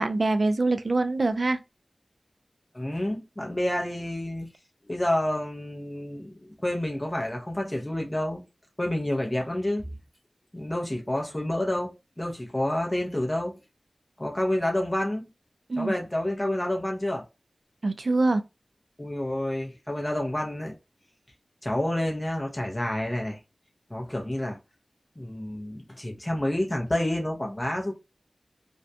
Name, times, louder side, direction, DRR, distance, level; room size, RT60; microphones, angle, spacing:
voice 1, 0.0-1.6 15.7-15.9 17.8-18.4, right 2 dB, 60° right, 0.3 m, -24 dB
voice 2, 2.7-4.5 4.9-8.4 8.8-9.9 10.5-13.6 14.2-15.3 15.8-17.2 19.0-20.7 21.6-23.4 23.9-24.6 25.2-27.9, left 1 dB, 15° left, 0.6 m, -29 dB
2.4 x 2.2 x 2.6 m
wide cardioid pair, 80°, 0 cm